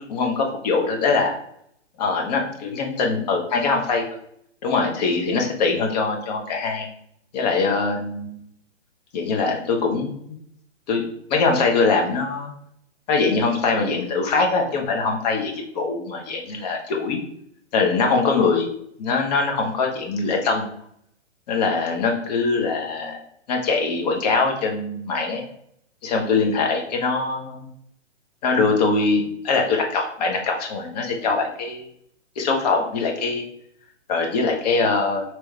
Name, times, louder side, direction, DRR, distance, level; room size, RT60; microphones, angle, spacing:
voice 1, 0.1-1.3 2.0-4.0 4.6-6.9 7.3-8.4 9.1-10.2 10.9-11.0 11.3-12.5 13.1-17.2 17.7-18.7 19.0-20.7 21.5-23.2 23.5-25.4 26.0-27.7 28.4-31.9 32.4-33.4 34.1-35.2, left 4 dB, 35° left, 2 dB, 0.8 m, -22 dB
4.5 x 3.1 x 3.1 m, 0.71 s
figure-of-eight pair, 125°, 37 cm